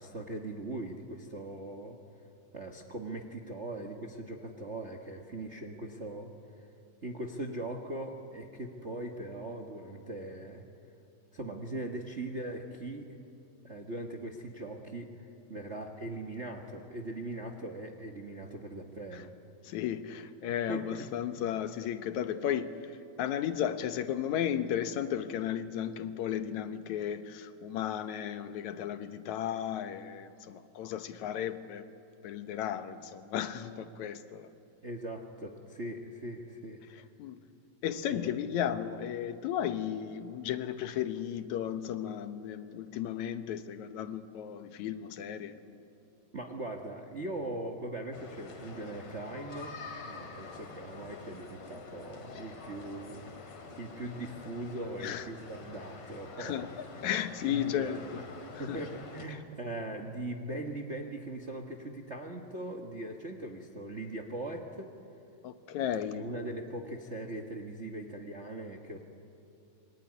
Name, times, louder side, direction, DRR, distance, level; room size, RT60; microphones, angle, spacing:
voice 1, 0.0-2.0 2.5-6.3 6.6-6.7 7.0-10.6 11.3-13.2 13.6-19.3 20.7-21.1 34.8-36.8 38.1-38.4 46.3-56.8 57.4-58.3 58.6-64.9 66.0-69.0, right 1 dB, 40° right, 3 dB, 1.0 m, -40 dB
voice 2, 19.6-22.7 23.2-31.9 32.2-34.5 36.9-37.4 37.8-45.8 55.0-55.3 56.4-58.2 58.6-58.8 59.3-59.4 65.4-66.3, left 10 dB, 80° left, 10 dB, 2.4 m, -34 dB
sound 1, 48.1-59.3, left 4 dB, 60° left, 3.4 m, -47 dB
27.0 x 22.0 x 9.8 m, 2.7 s
omnidirectional pair, 3.3 m